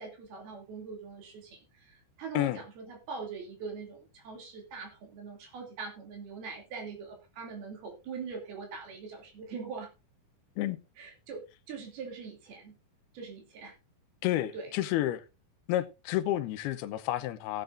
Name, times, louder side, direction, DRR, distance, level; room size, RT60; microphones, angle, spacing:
voice 1, 0.0-9.9 11.0-12.7 13.1-13.7 14.5-14.7, right 5 dB, 75° right, 4.6 m, -42 dB
voice 2, 14.2-15.2 15.7-17.6, left 14 dB, 85° left, 2.8 m, -30 dB
17.0 x 8.9 x 2.5 m
omnidirectional pair, 4.5 m